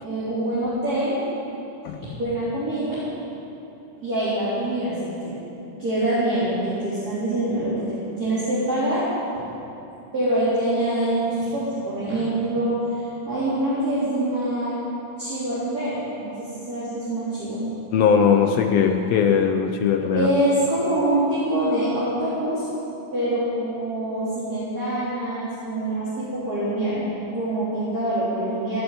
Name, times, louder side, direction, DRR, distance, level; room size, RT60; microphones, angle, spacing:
voice 1, 0.0-1.2 2.1-3.0 4.0-5.3 5.8-9.1 10.1-13.0 13.3-14.7 15.2-17.6 20.1-22.7 23.1-27.0 27.3-28.8, right 1 dB, 30° right, -11 dB, 3.9 m, -25 dB
voice 2, 17.9-20.3, left 7 dB, 75° left, 4 dB, 1.5 m, -19 dB
17.0 x 8.0 x 9.2 m, 2.9 s
omnidirectional pair, 3.7 m